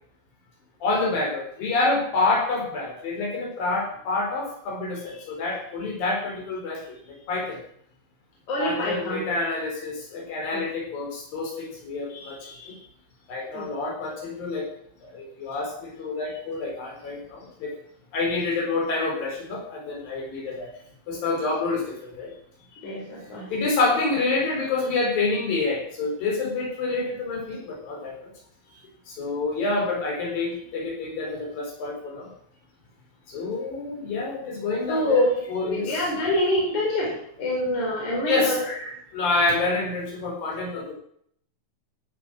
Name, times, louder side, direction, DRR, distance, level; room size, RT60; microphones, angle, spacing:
voice 1, 0.8-6.8 7.3-7.6 8.6-12.8 13.3-14.7 15.1-17.7 18.1-20.7 21.1-21.8 22.2-22.3 23.5-28.1 29.2-32.3 33.3-36.1 38.3-38.6 39.1-40.9, left 3 dB, 70° left, 0 dB, 6.0 m, -27 dB
voice 2, 8.5-9.2 10.5-10.6 13.5-13.6 22.8-23.5 34.9-37.1 37.4-38.9, left 1 dB, 55° left, -3 dB, 5.8 m, -25 dB
15.5 x 9.7 x 6.3 m, 0.66 s
omnidirectional pair, 4.2 m